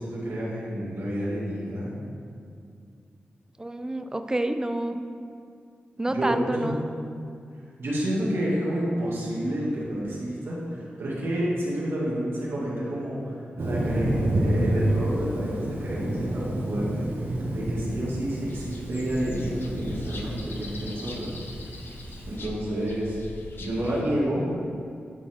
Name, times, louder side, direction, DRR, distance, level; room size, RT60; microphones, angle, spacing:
voice 1, 0.0-2.0 6.1-6.7 7.8-17.1 17.5-21.4 21.6-21.7 22.3-23.2 23.6-24.5, right 1 dB, 80° right, -6 dB, 2.2 m, -29 dB
voice 2, 3.6-5.0 6.0-6.9, right 1 dB, 15° right, 8 dB, 0.5 m, -28 dB
Thunder, 13.6-22.3, right 1 dB, 65° right, 1.4 m, -29 dB
sound 1, 18.5-24.0, left 2 dB, 65° left, 0.8 m, -42 dB
11.0 x 4.4 x 4.5 m, 2.3 s
cardioid pair, 70°, 4 cm